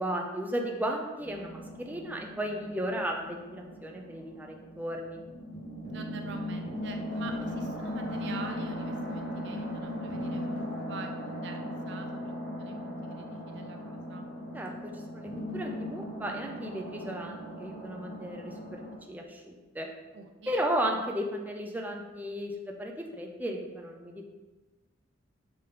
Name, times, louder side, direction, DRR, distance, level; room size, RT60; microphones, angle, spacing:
voice 1, 0.0-5.2 14.5-18.8 19.1-19.9 20.5-24.2, equal, 10° right, 1 dB, 0.5 m, -35 dB
sound 1, 1.2-19.0, equal, 60° left, 1.5 m, -38 dB
voice 2, 5.9-14.3 20.1-20.6, right 4 dB, 65° right, 4 dB, 0.6 m, -46 dB
6.7 x 3.7 x 3.7 m, 1.2 s
head